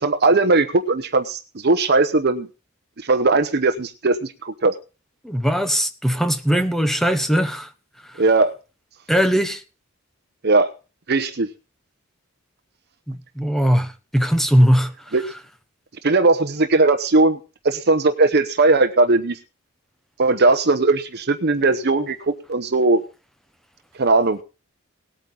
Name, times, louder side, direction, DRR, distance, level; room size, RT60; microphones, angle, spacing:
voice 1, 0.0-2.5 3.0-4.7 8.2-8.5 10.4-10.7 11.1-11.5 15.1-15.2 16.0-17.4 17.6-19.4 20.2-23.0 24.0-24.4, right 3 dB, 50° right, 0.9 m, -18 dB
voice 2, 5.2-7.7 8.1-8.2 9.1-9.6 13.1-15.1, equal, ahead, 1.1 m, -20 dB
19.0 x 9.0 x 3.9 m
head